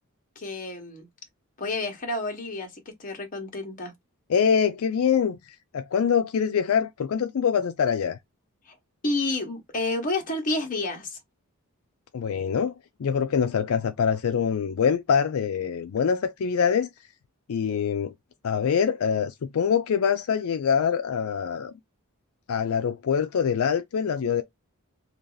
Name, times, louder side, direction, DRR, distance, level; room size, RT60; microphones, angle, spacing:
voice 1, 0.4-1.1 1.6-3.9 8.7-8.8 9.0-11.2, left 2 dB, 35° left, 1.1 m, -30 dB
voice 2, 4.3-5.4 5.7-8.2 12.1-12.7 13.0-16.9 17.5-18.1 18.4-21.7 22.5-24.4, left 7 dB, 75° left, 0.4 m, -24 dB
2.9 x 2.8 x 3.9 m
head